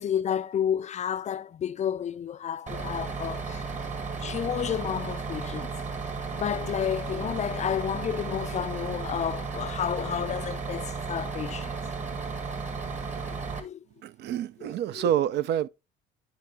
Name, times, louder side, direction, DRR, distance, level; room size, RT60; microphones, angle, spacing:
voice 1, 0.0-3.6 4.2-5.8 6.3-11.7 13.6-13.8 14.6-15.1, left 9 dB, 35° left, 0.4 m, -31 dB
Bus, 2.7-13.6, right 4 dB, 35° right, 1.4 m, -34 dB
voice 2, 14.0-15.7, right 11 dB, 55° right, 0.4 m, -27 dB
10.0 x 3.8 x 3.4 m
supercardioid pair, 80°, 20 cm